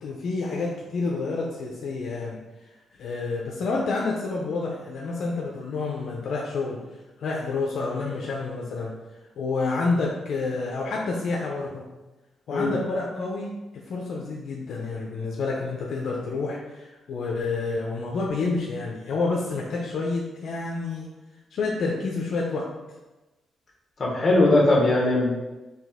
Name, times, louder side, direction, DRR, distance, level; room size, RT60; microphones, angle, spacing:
voice 1, 0.0-2.4 3.0-6.8 7.2-8.9 9.4-11.8 12.5-13.5 13.9-21.1 21.5-22.6, left 3 dB, 65° left, -2 dB, 0.5 m, -29 dB
voice 2, 24.0-25.3, left 2 dB, 35° left, -2 dB, 1.1 m, -20 dB
4.0 x 2.7 x 3.5 m, 1.1 s
cardioid pair, 120°, 0 cm